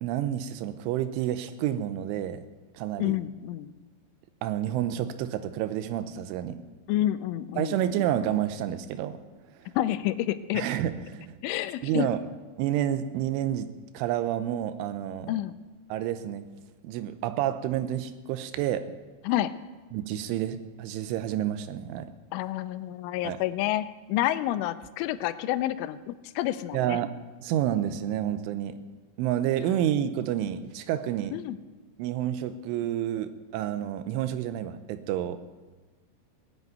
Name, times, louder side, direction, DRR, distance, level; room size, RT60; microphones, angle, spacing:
voice 1, 0.0-2.5 2.7-3.2 4.4-6.6 7.6-9.2 10.5-11.4 11.8-12.2 12.6-15.4 15.9-16.5 16.8-18.9 19.9-22.1 23.2-23.4 26.7-28.8 29.2-31.3 32.0-35.4, right 11 dB, 85° right, 11 dB, 3.2 m, -29 dB
voice 2, 3.0-3.7 6.9-7.8 9.8-10.6 11.4-12.1 15.3-15.5 19.3-19.5 22.3-27.0 31.3-31.6, left 13 dB, 90° left, 13 dB, 3.1 m, -29 dB
18.0 x 8.2 x 9.3 m, 1.3 s
omnidirectional pair, 5.5 m